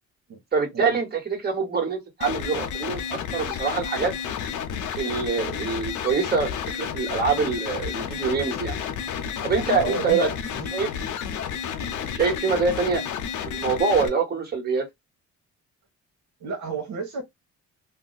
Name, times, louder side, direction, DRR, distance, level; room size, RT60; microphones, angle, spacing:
voice 1, 0.5-4.1 5.0-8.7 9.4-10.3 10.7-10.9 12.1-13.0 13.5-14.9, right 5 dB, 30° right, 1.4 m, -25 dB
sound 1, 2.2-14.1, left 7 dB, 75° left, 0.7 m, -31 dB
voice 2, 9.6-10.3 10.6-10.7 12.9-13.1 16.4-17.2, right 3 dB, 65° right, 1.1 m, -31 dB
2.6 x 2.1 x 3.9 m
cardioid pair, 90°, 30 cm